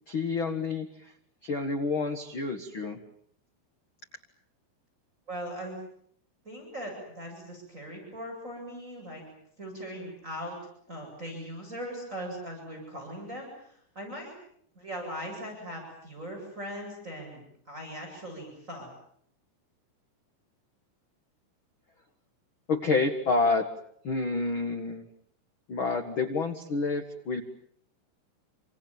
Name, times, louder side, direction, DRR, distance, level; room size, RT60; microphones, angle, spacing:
voice 1, 0.1-1.1 1.4-3.0 22.7-23.7 24.0-25.0 25.7-27.4, left 3 dB, 50° left, 8 dB, 1.6 m, -28 dB
voice 2, 5.3-5.8 6.4-9.2 9.6-10.6 10.9-14.4 14.7-17.4 17.7-18.9, equal, 15° right, 0 dB, 8.3 m, -39 dB
29.5 x 26.0 x 7.3 m, 0.68 s
omnidirectional pair, 4.7 m